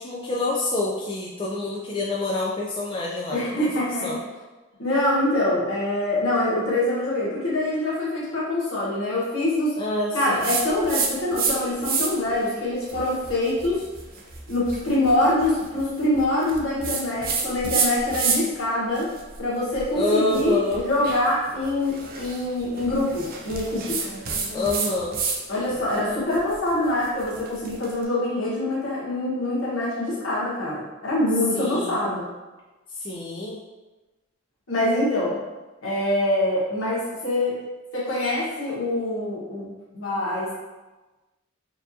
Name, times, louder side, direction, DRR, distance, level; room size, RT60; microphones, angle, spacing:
voice 1, 0.0-3.7 4.0-4.2 9.8-10.5 19.9-20.9 24.5-25.2 31.5-32.0 33.0-33.6, left 2 dB, 25° left, -5 dB, 0.4 m, -27 dB
voice 2, 3.3-4.2 4.8-9.8 10.1-13.8 14.5-19.1 19.4-24.0 25.5-32.3 34.7-35.4 35.8-37.6 37.9-40.5, left 1 dB, 80° left, -7 dB, 1.4 m, -24 dB
sound 1, 10.4-11.6 11.8-12.3 12.8-18.6 19.0-25.4 25.7-27.9, right 5 dB, 45° right, 0.5 m, -29 dB
4.4 x 2.5 x 2.7 m, 1.2 s
head